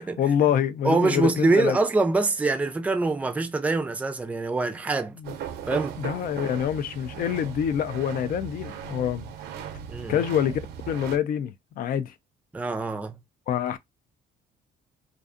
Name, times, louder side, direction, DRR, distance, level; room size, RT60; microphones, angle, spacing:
voice 1, 0.0-1.8 5.2-5.3 6.0-9.3 10.1-10.6 10.9-12.1 13.5-13.8, left 9 dB, 55° left, 0.4 m, -26 dB
voice 2, 0.8-5.2 5.7-6.0 9.9-10.3 12.5-13.2, right 3 dB, 10° right, 0.4 m, -24 dB
sound 1, 5.2-11.2, right 9 dB, 75° right, 0.6 m, -37 dB
2.5 x 2.3 x 2.5 m
cardioid pair, 110°, 17 cm